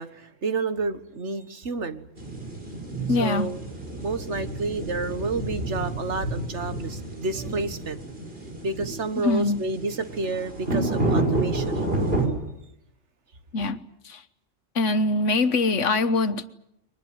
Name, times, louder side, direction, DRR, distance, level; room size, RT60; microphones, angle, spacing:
voice 1, 0.0-2.1 3.1-3.6 4.0-8.0 8.6-11.9, right 3 dB, 65° right, 1.8 m, -30 dB
sound 1, 2.2-12.3, right 2 dB, 50° right, 5.9 m, -29 dB
voice 2, 3.1-3.5 9.2-9.6 13.5-13.8 14.0-14.2 14.7-16.5, left 3 dB, 75° left, 1.5 m, -23 dB
23.5 x 20.0 x 9.4 m
omnidirectional pair, 1.3 m